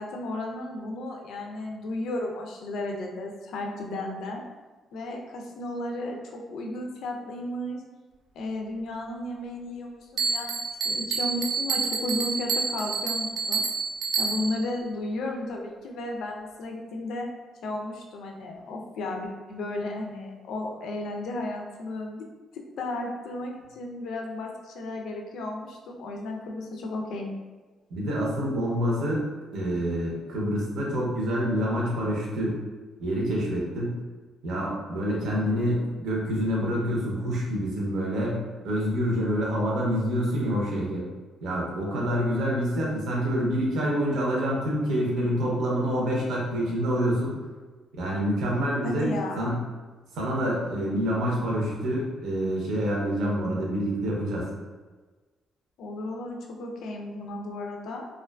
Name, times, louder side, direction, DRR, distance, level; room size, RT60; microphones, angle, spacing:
voice 1, 0.0-4.4 4.9-7.8 8.3-10.6 10.8-13.6 14.2-17.3 17.6-22.3 22.5-27.3 48.8-49.6 55.8-58.1, left 2 dB, 70° left, 1 dB, 0.4 m, -34 dB
Bell, 10.2-14.7, right 4 dB, 55° right, 0.3 m, -28 dB
voice 2, 27.9-29.3 29.5-32.6 33.0-34.0 34.4-41.1 41.4-47.3 47.9-49.5 50.1-54.5, equal, 75° right, -3 dB, 0.7 m, -27 dB
2.4 x 2.4 x 2.2 m, 1.3 s
cardioid pair, 155°, 0 cm